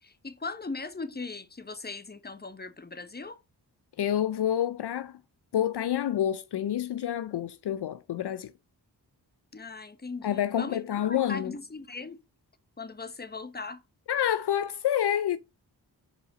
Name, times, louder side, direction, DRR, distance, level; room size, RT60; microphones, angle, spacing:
voice 1, 0.0-3.4 9.5-12.2 12.8-13.8, left 3 dB, 25° left, 1.1 m, -39 dB
voice 2, 4.0-5.2 5.5-8.5 10.2-11.5 14.1-15.4, left 10 dB, 70° left, 0.6 m, -28 dB
5.5 x 5.1 x 5.0 m
cardioid pair, 50°, 41 cm